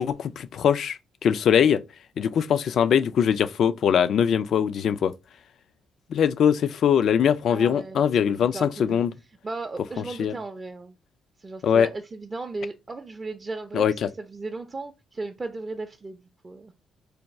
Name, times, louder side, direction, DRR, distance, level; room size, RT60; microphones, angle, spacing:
voice 1, 0.0-1.8 2.2-5.1 6.1-9.1 10.2-10.3 11.6-11.9 13.7-13.9, left 8 dB, 65° left, 0.3 m, -22 dB
voice 2, 7.5-9.0 9.4-10.9 11.4-16.7, right 3 dB, 25° right, 0.4 m, -36 dB
3.3 x 2.3 x 4.0 m
cardioid pair, 90°, 0 cm